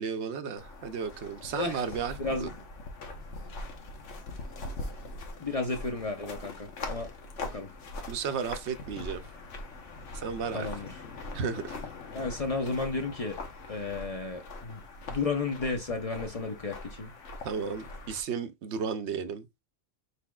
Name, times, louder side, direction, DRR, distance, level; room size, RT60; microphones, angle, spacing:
voice 1, 0.0-2.5 8.1-9.2 10.1-10.7 11.3-11.8 17.4-19.5, right 6 dB, 75° right, 0.9 m, -34 dB
sound 1, 0.6-18.2, left 2 dB, 80° left, 1.3 m, -42 dB
voice 2, 2.2-2.6 5.4-7.1 7.5-7.7 10.5-10.9 12.1-13.4 13.7-14.8 15.1-17.1, left 3 dB, 40° left, 0.7 m, -33 dB
4.8 x 4.2 x 2.3 m
omnidirectional pair, 1.2 m